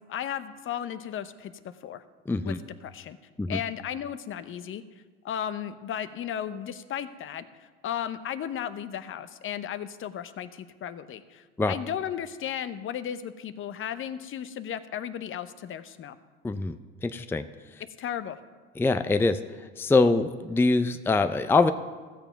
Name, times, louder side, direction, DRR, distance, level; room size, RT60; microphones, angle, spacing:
voice 1, 0.1-2.0 2.4-2.5 2.8-3.2 3.5-4.8 5.2-16.2 18.0-18.4, left 9 dB, 45° left, 12 dB, 0.8 m, -35 dB
voice 2, 2.3-2.6 3.4-3.6 11.6-11.7 16.4-16.8 17.0-17.5 17.7-17.8 18.8-21.7, left 3 dB, 10° left, 10 dB, 0.5 m, -24 dB
15.5 x 7.0 x 5.8 m, 1.4 s
hypercardioid pair, 80°, 30 cm